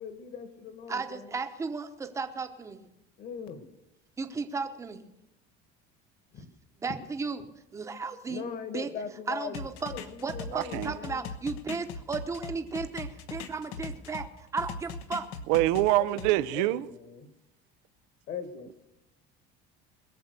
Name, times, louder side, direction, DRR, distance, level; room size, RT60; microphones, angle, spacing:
voice 1, 0.0-1.4 3.2-3.7 6.3-6.5 8.3-9.6 9.9-11.3 16.0-16.2 16.5-17.3 18.3-18.7, left 6 dB, 45° left, 1.8 m, -40 dB
voice 2, 0.9-2.8 4.2-5.0 6.8-7.4 7.7-8.4 8.7-8.9 9.3-9.9 10.2-14.3 14.5-15.3, right 4 dB, 15° right, 1.0 m, -34 dB
sound 1, 9.5-14.3 14.6-16.3, left 4 dB, 75° left, 1.2 m, -39 dB
voice 3, 10.5-11.0 15.5-16.9, right 17 dB, 85° right, 0.7 m, -25 dB
21.5 x 7.3 x 6.7 m
cardioid pair, 165°, 21 cm